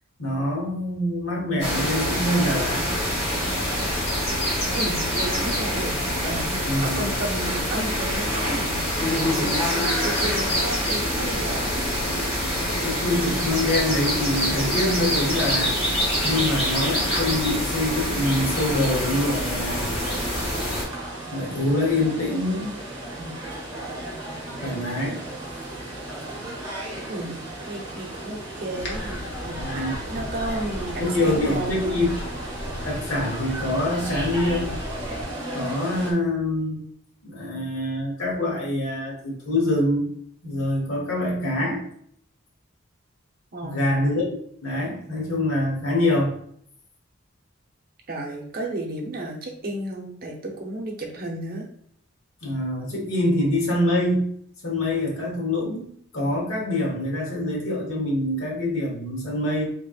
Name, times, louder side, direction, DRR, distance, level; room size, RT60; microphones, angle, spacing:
voice 1, 0.2-2.9 6.6-7.1 12.8-15.8 16.2-19.9 21.3-22.7 23.1-23.3 24.6-25.2 29.6-29.9 31.0-32.1 32.8-34.7 35.5-36.8 37.2-40.0 40.4-41.9 43.6-44.3 44.6-46.4 52.4-54.3 54.6-59.7, left 1 dB, 80° left, -2 dB, 1.2 m, -25 dB
sound 1, 1.6-20.8, equal, 30° left, 1.2 m, -25 dB
voice 2, 4.7-11.9 27.1-27.4 27.7-31.7 43.5-44.1 48.1-51.7, right 1 dB, 45° right, 0 dB, 0.7 m, -33 dB
sound 2, 19.9-36.1, right 1 dB, 20° right, 1.0 m, -35 dB
sound 3, 28.8-35.2, left 1 dB, 60° left, 0.9 m, -35 dB
3.6 x 3.4 x 2.4 m, 0.65 s
head